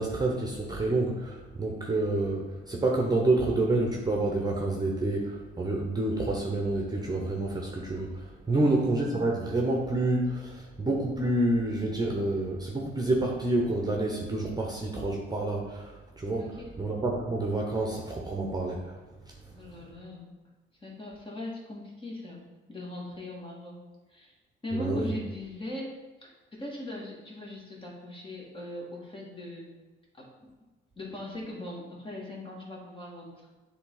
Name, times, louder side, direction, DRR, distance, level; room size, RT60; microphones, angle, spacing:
voice 1, 0.0-18.9 24.8-25.1, right 2 dB, 20° right, 0 dB, 1.0 m, -28 dB
voice 2, 16.4-16.7 19.5-20.4 20.8-22.4 22.7-23.8 24.1-24.3 24.6-29.7 30.2-30.5 31.0-33.5, left 1 dB, 25° left, -2 dB, 1.9 m, -40 dB
7.8 x 3.5 x 3.9 m, 1.2 s
cardioid pair, 90°, 20 cm